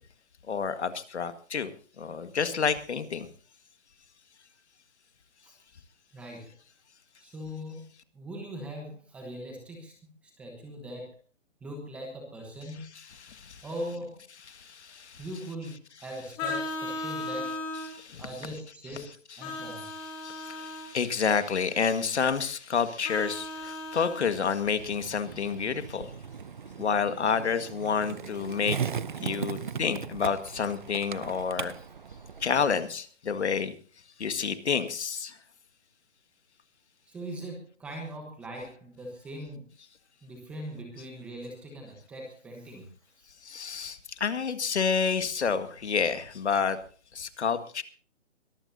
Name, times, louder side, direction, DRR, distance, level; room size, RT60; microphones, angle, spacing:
voice 1, 0.5-1.7 2.0-3.3 13.0-13.7 14.5-15.3 17.9-18.3 19.5-26.1 26.8-28.8 29.2-31.7 32.4-33.7 34.2-35.4 43.4-46.8 47.1-47.8, left 6 dB, 60° left, 10 dB, 1.9 m, -29 dB
voice 2, 6.1-6.5 7.2-7.8 8.1-9.9 10.4-11.1 11.6-12.8 13.6-14.2 15.2-17.6 18.2-19.9 37.1-39.6 40.2-42.8, equal, 5° right, 1 dB, 1.1 m, -40 dB
Vehicle horn car horn honking, 16.4-17.9 19.4-20.9 23.0-24.2, left 3 dB, 15° left, 3.8 m, -36 dB
Skateboard, 24.8-32.8, right 7 dB, 40° right, 0.6 m, -38 dB
22.5 x 14.5 x 2.8 m, 0.40 s
hypercardioid pair, 170°, 38 cm